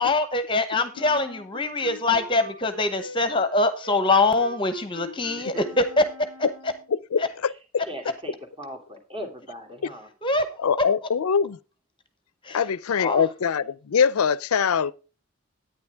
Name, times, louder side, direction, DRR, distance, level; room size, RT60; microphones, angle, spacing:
voice 1, 0.0-6.0 7.2-7.3 10.2-10.5 12.4-12.6 13.0-13.2, left 3 dB, 25° left, 0.9 m, -23 dB
Wind instrument woodwind instrument, 0.9-6.9, left 1 dB, 90° right, 5.8 m, -43 dB
voice 2, 6.9-7.5 9.8-9.9 10.6-11.6 12.5-14.9, left 6 dB, 90° left, 0.5 m, -23 dB
voice 3, 7.9-10.1, equal, 25° right, 2.5 m, -38 dB
10.5 x 9.4 x 3.4 m
head